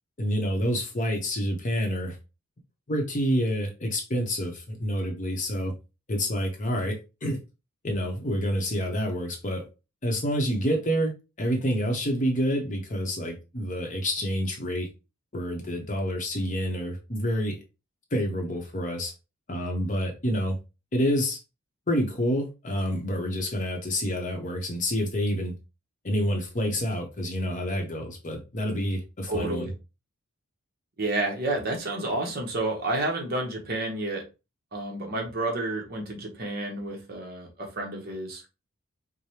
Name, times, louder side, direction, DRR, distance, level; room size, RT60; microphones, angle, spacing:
voice 1, 0.2-2.2 2.9-5.7 6.1-7.4 7.8-9.6 10.0-11.1 11.4-14.9 15.3-17.6 18.1-19.1 19.5-20.6 20.9-21.4 21.9-25.5 26.0-29.7, equal, 35° left, 0.8 m, -28 dB
voice 2, 29.3-29.7 31.0-34.2 34.7-38.4, right 2 dB, 45° right, 1.0 m, -30 dB
4.8 x 2.1 x 2.9 m
head